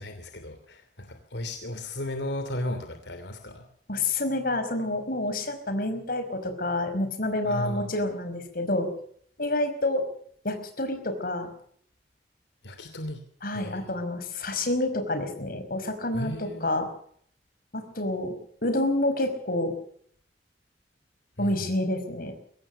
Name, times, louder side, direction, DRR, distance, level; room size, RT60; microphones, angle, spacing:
voice 1, 0.0-3.6 7.4-7.9 12.6-13.2 13.5-14.0 16.1-16.7 21.4-21.6, left 1 dB, 85° left, 7 dB, 2.9 m, -35 dB
voice 2, 3.9-8.9 9.4-10.0 10.4-11.5 13.4-16.9 17.7-18.3 18.6-19.7 21.4-22.3, left 1 dB, 55° left, 8 dB, 5.1 m, -28 dB
23.5 x 17.5 x 6.6 m, 0.63 s
head